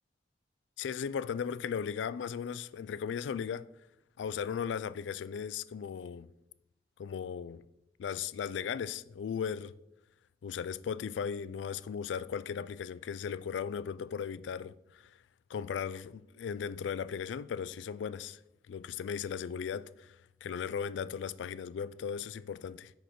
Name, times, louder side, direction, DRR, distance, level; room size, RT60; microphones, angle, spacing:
voice 1, 0.8-3.7 4.2-6.3 7.0-7.6 8.0-9.7 10.4-15.1 15.5-18.4 18.7-20.1 20.4-22.9, left 7 dB, 85° left, 0.3 m, -37 dB
5.1 x 5.0 x 5.9 m
head